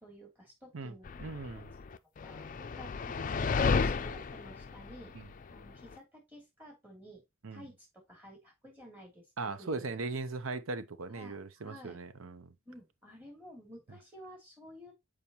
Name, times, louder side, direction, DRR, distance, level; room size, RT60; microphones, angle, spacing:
voice 1, 0.0-1.1 1.4-1.9 2.2-5.1 5.5-7.2 7.5-10.0 11.1-12.0 12.6-14.9, equal, 10° right, 2.8 m, -53 dB
sound 1, 1.1-5.9, left 4 dB, 40° left, 0.4 m, -33 dB
voice 2, 1.2-1.7 5.1-5.3 7.4-7.6 9.4-12.5, right 3 dB, 90° right, 0.7 m, -39 dB
7.0 x 4.9 x 2.9 m
head